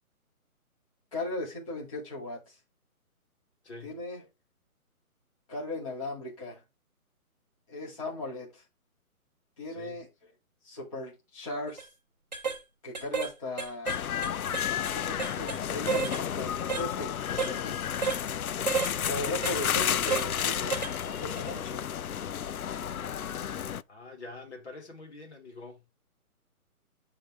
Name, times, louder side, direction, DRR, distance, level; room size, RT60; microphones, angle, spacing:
voice 1, 1.1-2.6 3.8-4.2 5.5-6.6 7.7-8.6 9.6-10.1 10.6-11.9 12.8-14.0 14.7-17.8 19.0-21.8, left 2 dB, 20° left, 2.4 m, -38 dB
voice 2, 3.6-4.0 9.7-10.0 23.9-26.0, left 3 dB, 50° left, 3.3 m, -46 dB
sound 1, 11.7-11.9 12.3-12.6 12.9-13.3 13.6-15.6 15.9-16.2 16.7-16.9 17.4-17.5 18.0-18.2 18.7-18.9 19.4-19.6 20.1-20.3 20.7-20.9 21.4-21.5, right 5 dB, 30° right, 0.9 m, -31 dB
sound 2, 13.9-23.8, left 9 dB, 70° left, 0.6 m, -32 dB
10.0 x 3.8 x 4.5 m
hypercardioid pair, 180°, 44 cm